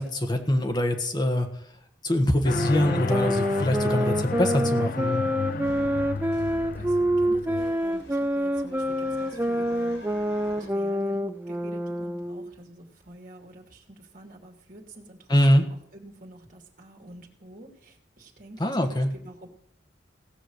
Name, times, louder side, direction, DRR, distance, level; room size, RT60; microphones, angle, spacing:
voice 1, 0.0-1.5 2.0-5.3 15.3-15.6 18.6-19.1, left 1 dB, 25° left, 4 dB, 1.5 m, -23 dB
sound 1, 2.4-7.7, left 4 dB, 50° left, 0.4 m, -32 dB
sound 2, 2.5-12.5, equal, 10° right, 0.5 m, -27 dB
sound 3, 5.6-10.7, left 1 dB, 90° left, 4.1 m, -47 dB
voice 2, 6.7-10.0 10.4-19.5, right 1 dB, 50° right, 0 dB, 2.8 m, -47 dB
17.5 x 6.2 x 6.5 m, 0.69 s
head